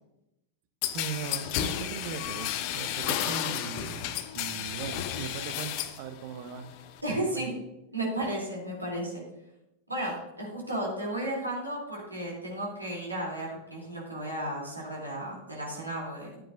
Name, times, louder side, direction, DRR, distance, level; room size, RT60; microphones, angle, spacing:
sound 1, 0.8-6.0 6.4-7.0, left 11 dB, 45° left, 0.7 m, -32 dB
voice 1, 0.8-6.8 7.1-7.5, right 7 dB, 50° right, 9 dB, 0.8 m, -39 dB
voice 2, 7.0-7.5 7.9-9.2 9.9-16.4, right 1 dB, 85° right, -3 dB, 3.0 m, -34 dB
11.5 x 8.9 x 2.6 m, 0.91 s
figure-of-eight pair, 90°, 0 cm